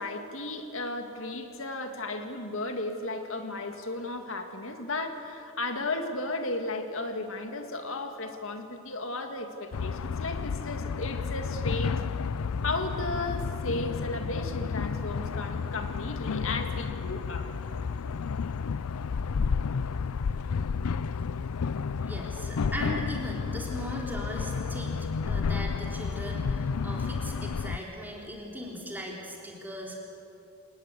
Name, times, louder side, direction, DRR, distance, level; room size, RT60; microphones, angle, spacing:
voice 1, 0.0-12.0 12.6-17.5, left 2 dB, 65° left, 5 dB, 2.0 m, -34 dB
sound 1, 9.7-27.8, left 5 dB, 90° left, 0.5 m, -31 dB
voice 2, 22.0-30.0, equal, 10° right, -2 dB, 3.6 m, -38 dB
27.5 x 19.5 x 8.3 m, 2.7 s
head